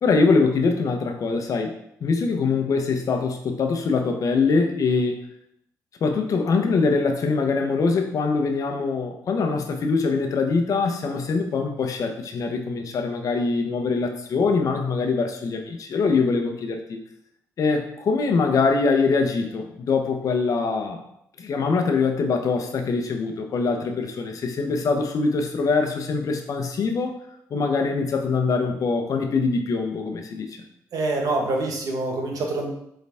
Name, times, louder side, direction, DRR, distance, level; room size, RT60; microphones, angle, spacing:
voice 1, 0.0-5.2 6.0-17.0 17.6-21.0 21.4-27.1 27.5-30.6, left 4 dB, 60° left, 4 dB, 1.0 m, -23 dB
voice 2, 30.9-32.7, right 2 dB, 65° right, 1 dB, 1.4 m, -25 dB
6.7 x 3.9 x 3.6 m, 0.74 s
cardioid pair, 80°, 7 cm